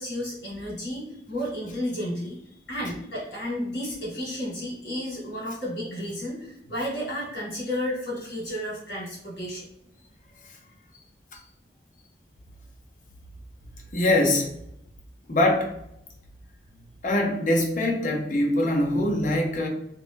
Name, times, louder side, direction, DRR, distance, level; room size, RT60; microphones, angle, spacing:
voice 1, 0.0-9.7, equal, 70° left, -5 dB, 1.5 m, -32 dB
voice 2, 13.9-14.5 15.3-15.8 17.0-19.7, left 1 dB, 45° left, 1 dB, 0.7 m, -23 dB
2.8 x 2.5 x 3.5 m, 0.75 s
head